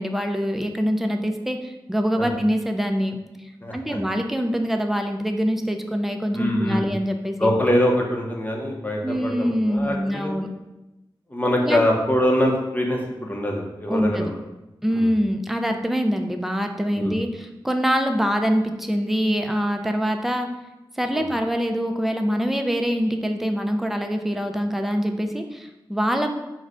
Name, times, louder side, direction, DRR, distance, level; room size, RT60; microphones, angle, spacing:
voice 1, 0.0-3.2 3.7-7.5 9.0-10.5 11.6-11.8 13.9-14.3 14.8-20.5 21.0-26.3, equal, 5° right, 5 dB, 0.4 m, -24 dB
voice 2, 3.6-4.0 6.3-6.8 7.4-10.3 11.3-14.4 14.9-15.1 16.9-17.2 21.1-21.2, left 1 dB, 20° left, -1 dB, 0.7 m, -23 dB
4.6 x 2.1 x 3.8 m, 0.99 s
wide cardioid pair, 85°, 9 cm